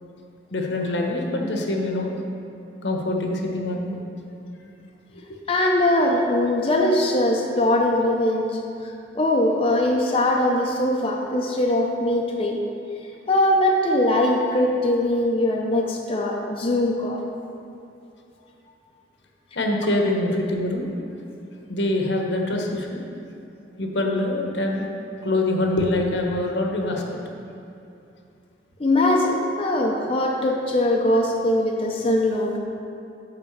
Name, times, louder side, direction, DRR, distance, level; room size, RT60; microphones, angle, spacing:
voice 1, 0.5-2.1 2.8-4.0 5.1-5.2 19.5-20.9 21.7-23.0 23.8-24.9 25.2-27.2, left 1 dB, 80° left, 1 dB, 1.0 m, -24 dB
voice 2, 5.5-12.6 13.3-17.2 28.8-32.6, left 1 dB, 30° left, -1 dB, 0.6 m, -21 dB
9.7 x 3.7 x 6.4 m, 2.6 s
head